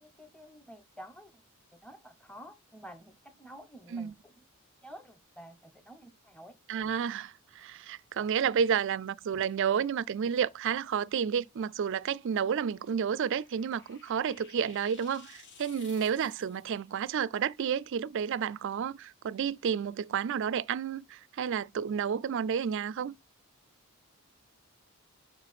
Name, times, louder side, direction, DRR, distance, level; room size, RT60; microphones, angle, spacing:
voice 1, 0.0-1.4 1.7-4.4 4.8-6.6, equal, 5° left, 1.0 m, -50 dB
voice 2, 6.7-23.2, right 7 dB, 55° right, 0.3 m, -31 dB
sound 1, 12.6-16.8, left 5 dB, 55° left, 1.5 m, -55 dB
5.4 x 4.8 x 5.8 m
head